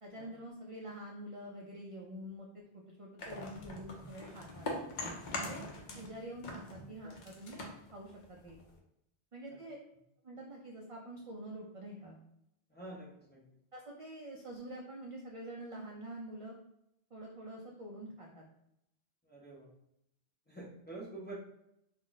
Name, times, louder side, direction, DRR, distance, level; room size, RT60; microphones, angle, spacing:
voice 1, 0.0-4.7 5.3-5.6 5.9-7.6 7.9-8.6 9.3-9.8 10.2-12.2 13.7-16.5 17.1-18.4, right 1 dB, 60° right, -2 dB, 0.3 m, -46 dB
sound 1, 3.2-6.1 6.4-8.8, left 2 dB, 55° left, 0.6 m, -42 dB
voice 2, 12.7-13.4 19.2-19.7 20.5-21.3, right 2 dB, 15° left, -6 dB, 0.5 m, -47 dB
2.4 x 2.1 x 3.8 m, 0.79 s
omnidirectional pair, 1.1 m